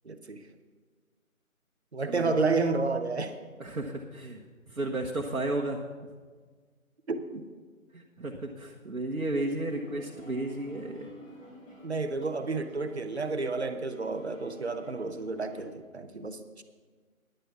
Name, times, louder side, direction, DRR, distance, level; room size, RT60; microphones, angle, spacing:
voice 1, 0.0-0.4 1.9-3.4 7.1-7.4 11.8-16.6, right 3 dB, 50° right, 9 dB, 0.9 m, -31 dB
voice 2, 3.6-4.4 4.7-5.8 7.9-11.1, right 2 dB, 70° right, 0 dB, 1.2 m, -33 dB
sound 1, 9.7-15.6, right 1 dB, 65° left, 4.0 m, -51 dB
10.5 x 9.3 x 5.9 m, 1.5 s
figure-of-eight pair, 165°, 42 cm